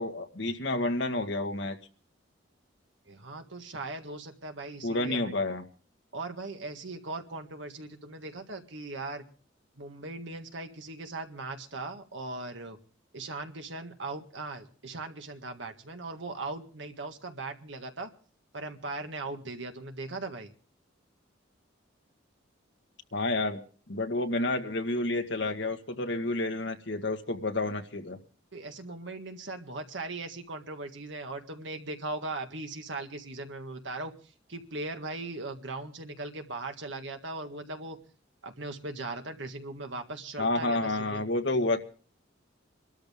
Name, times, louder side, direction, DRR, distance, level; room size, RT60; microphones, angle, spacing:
voice 1, 0.0-1.8 4.8-5.6 23.1-28.2 40.4-41.8, left 2 dB, 60° left, 6 dB, 1.6 m, -30 dB
voice 2, 3.1-5.3 6.1-9.2 9.8-12.8 13.1-18.1 18.5-20.5 28.5-34.1 34.5-38.0 38.4-41.2, right 2 dB, 70° right, 6 dB, 1.8 m, -39 dB
24.5 x 13.0 x 3.6 m, 0.41 s
head